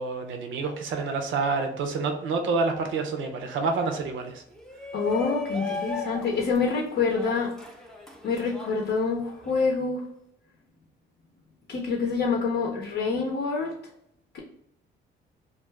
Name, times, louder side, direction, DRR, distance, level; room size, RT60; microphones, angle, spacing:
voice 1, 0.0-4.4, right 4 dB, 80° right, 4 dB, 0.6 m, -28 dB
Shout, 4.5-9.6, left 4 dB, 5° left, 0.5 m, -37 dB
voice 2, 4.9-7.5 8.2-10.0 11.7-13.7 14.3-14.4, left 4 dB, 60° left, -1 dB, 0.6 m, -26 dB
2.4 x 2.3 x 3.2 m, 0.77 s
cardioid pair, 90°, 20 cm